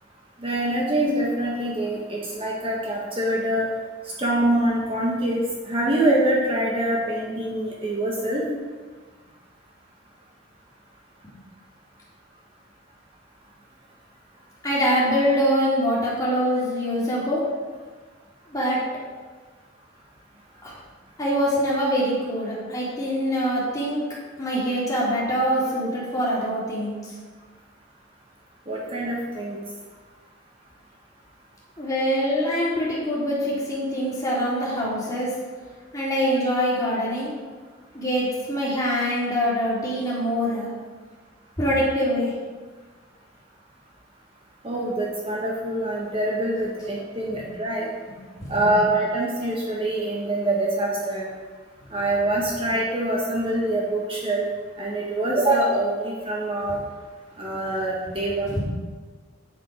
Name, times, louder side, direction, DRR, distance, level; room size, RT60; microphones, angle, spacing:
voice 1, 0.4-3.7 4.2-8.4 28.7-29.6 36.8-36.9 44.6-47.9 48.5-51.3 51.9-54.4 54.8-56.8 57.4-58.6, right 1 dB, 30° right, -4 dB, 1.5 m, -24 dB
voice 2, 14.6-17.4 18.5-18.8 20.6-20.7 21.2-24.0 24.4-27.1 31.8-35.3 35.9-37.3 37.9-40.7 41.6-42.3 47.3-47.4 48.4-48.7 56.7-56.8 58.1-58.2 58.4-58.6, equal, 20° left, -7 dB, 3.2 m, -24 dB
8.9 x 8.4 x 4.9 m, 1.4 s
head